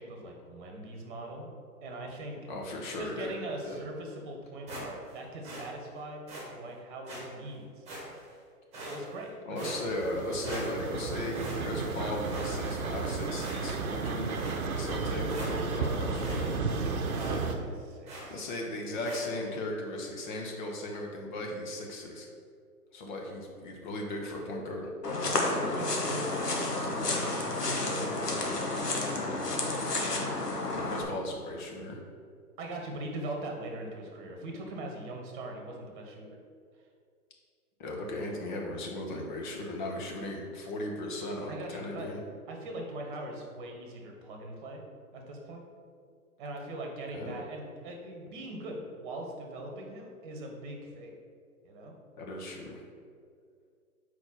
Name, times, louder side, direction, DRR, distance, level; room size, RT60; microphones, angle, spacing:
voice 1, 0.0-1.5 1.8-2.5 3.0-6.2 6.5-7.8 8.7-9.8 16.6-18.4 25.3-29.8 32.6-36.3 41.5-42.1 42.5-44.8 45.1-45.6 46.4-51.1 51.6-52.0, right 1 dB, 35° right, 1 dB, 1.2 m, -41 dB
voice 2, 2.5-3.3 3.6-3.8 9.5-14.3 14.8-16.4 18.3-22.3 22.9-24.9 30.7-32.0 37.8-42.2 47.1-47.3 52.2-52.8, left 1 dB, 30° left, 0 dB, 0.9 m, -37 dB
sound 1, 4.7-5.2 5.4-5.7 6.3-6.5 7.1-7.2 7.9-8.3 8.7-9.2 9.6-10.2 10.4-11.0 11.3-12.0 12.3-13.0 13.4-13.9 14.3-14.6 15.0-15.1 15.3-15.9 16.2-16.4 16.7-16.8 17.1-17.4 18.1-18.4 19.1-19.3, right 1 dB, 15° right, 1.5 m, -42 dB
sound 2, 9.6-17.6, right 4 dB, 65° right, 0.9 m, -33 dB
sound 3, 25.0-31.0, left 2 dB, 85° left, 1.2 m, -31 dB
4.6 x 4.3 x 5.7 m, 2.2 s
figure-of-eight pair, 130°, 46 cm